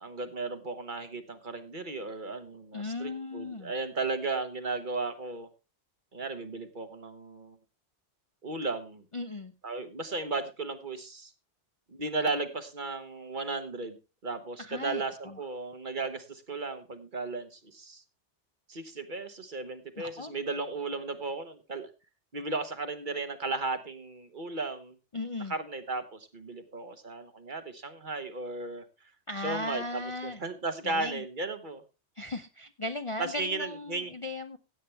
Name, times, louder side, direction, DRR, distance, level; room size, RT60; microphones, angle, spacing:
voice 1, 0.0-5.5 6.1-7.6 8.4-9.0 9.6-11.3 11.9-14.0 14.2-18.0 18.7-21.9 22.3-24.9 25.5-28.8 29.4-31.8 33.2-34.1, right 3 dB, 45° right, 9 dB, 1.3 m, -35 dB
voice 2, 2.7-3.7 9.1-9.5 14.6-15.4 20.0-20.3 25.1-25.5 29.3-30.4 30.8-31.2 32.2-34.6, left 2 dB, 35° left, 8 dB, 0.6 m, -37 dB
16.0 x 8.5 x 3.3 m, 0.28 s
omnidirectional pair, 1.2 m